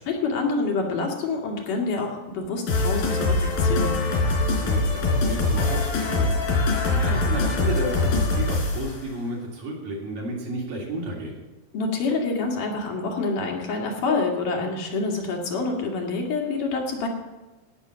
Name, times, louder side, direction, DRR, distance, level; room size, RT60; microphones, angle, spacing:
voice 1, 0.1-4.0 11.7-17.1, left 3 dB, 70° left, 0 dB, 3.6 m, -27 dB
sound 1, 2.7-9.0, left 3 dB, 90° left, 5.0 m, -23 dB
voice 2, 4.5-6.4 6.9-11.4, right 1 dB, 70° right, -2 dB, 4.7 m, -32 dB
17.0 x 6.3 x 7.6 m, 1.1 s
omnidirectional pair, 4.0 m